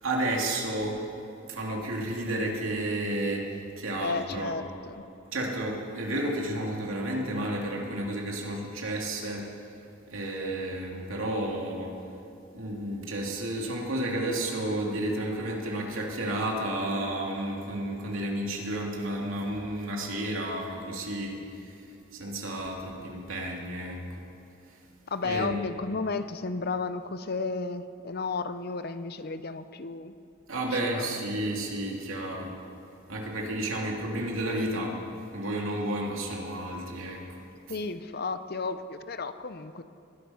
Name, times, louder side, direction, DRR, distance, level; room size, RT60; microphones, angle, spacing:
voice 1, 0.0-1.0 1.5-4.6 5.3-9.5 10.1-12.0 12.5-21.4 22.1-24.0 25.2-25.6 30.5-32.5 33.1-35.0 35.3-37.2 37.7-37.8, right 1 dB, 80° right, -1 dB, 2.7 m, -31 dB
voice 2, 3.9-5.0 25.1-30.1 30.7-31.1 37.7-39.8, left 4 dB, 50° left, 11 dB, 0.6 m, -33 dB
20.5 x 12.5 x 5.7 m, 2.6 s
head